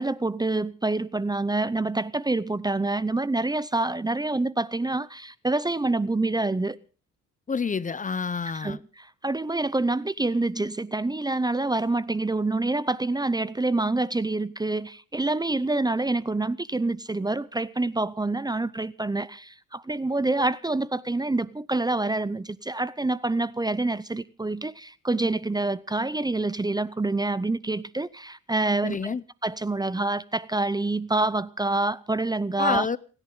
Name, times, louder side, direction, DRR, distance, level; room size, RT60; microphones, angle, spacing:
voice 1, 0.0-6.8 8.5-29.1 29.4-32.9, right 2 dB, 15° right, 0.7 m, -27 dB
voice 2, 7.5-8.8 28.8-29.2 32.6-33.0, left 5 dB, 25° left, 0.7 m, -28 dB
29.5 x 11.0 x 3.8 m
cardioid pair, 90°, 30 cm